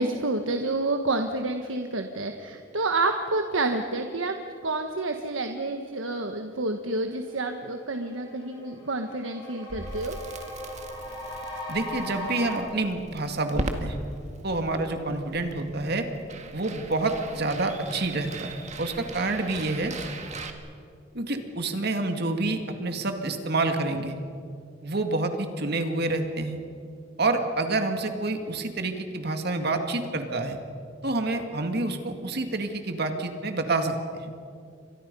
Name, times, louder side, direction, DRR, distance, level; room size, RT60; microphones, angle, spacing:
voice 1, 0.0-4.4 4.6-10.2, right 2 dB, 85° right, 5 dB, 1.4 m, -29 dB
sound 1, 6.8-6.9 7.2-12.6, left 1 dB, 25° left, 6.6 m, -39 dB
Crackle, 9.7-20.5, right 2 dB, 35° right, 1.9 m, -39 dB
voice 2, 11.7-14.0 14.4-16.1 16.5-19.9 21.1-24.2 24.8-26.6 27.2-30.6 31.0-34.3, right 2 dB, 55° right, 5 dB, 2.2 m, -28 dB
29.5 x 25.0 x 5.5 m, 2.4 s
head